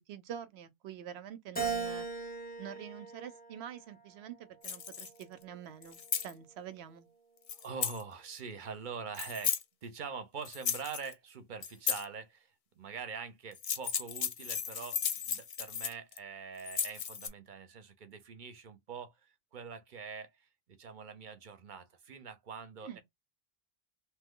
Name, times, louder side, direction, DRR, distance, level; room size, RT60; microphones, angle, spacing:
voice 1, 0.0-2.1 2.6-7.1 22.8-23.0, right 9 dB, 80° right, 0.9 m, -46 dB
Keyboard (musical), 1.6-4.0 4.6-5.9, right 5 dB, 10° left, 0.7 m, -39 dB
sound 1, 4.6-5.2 5.8-6.3 7.5-8.0 9.1-9.6 10.5-11.1 11.6-12.0 13.5-16.2 16.6-17.3, left 7 dB, 55° left, 0.4 m, -35 dB
voice 2, 7.5-23.0, right 5 dB, 55° right, 0.7 m, -44 dB
2.9 x 2.1 x 3.6 m
omnidirectional pair, 1.1 m